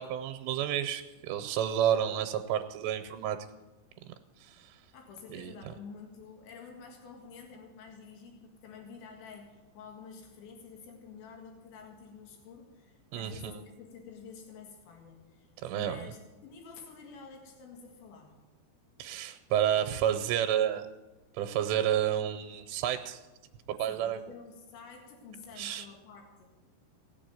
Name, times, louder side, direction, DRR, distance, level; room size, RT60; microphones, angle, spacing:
voice 1, 0.0-3.4 4.4-4.7 5.3-5.5 13.1-13.5 15.6-16.1 19.0-20.8 21.3-23.2 23.7-24.2 25.6-25.9, right 10 dB, 85° right, 6 dB, 2.9 m, -30 dB
voice 2, 4.9-18.4 23.8-26.5, left 5 dB, 90° left, 2 dB, 4.1 m, -49 dB
18.0 x 7.1 x 9.2 m, 1.2 s
omnidirectional pair, 5.1 m